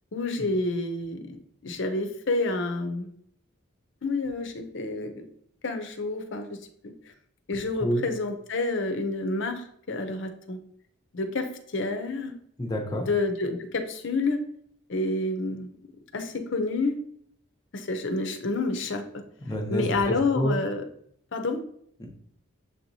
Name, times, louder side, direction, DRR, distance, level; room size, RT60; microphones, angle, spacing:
voice 1, 0.1-1.4 1.6-3.1 4.0-5.2 5.6-6.6 7.5-10.6 11.1-12.3 13.0-14.4 14.9-15.8 16.1-17.0 17.7-19.0 19.7-20.8 21.3-21.6, left 3 dB, 55° left, 6 dB, 0.6 m, -29 dB
voice 2, 12.6-13.1 19.4-20.6 22.0-22.1, equal, 20° left, 1 dB, 0.7 m, -28 dB
6.7 x 2.9 x 2.7 m, 0.65 s
head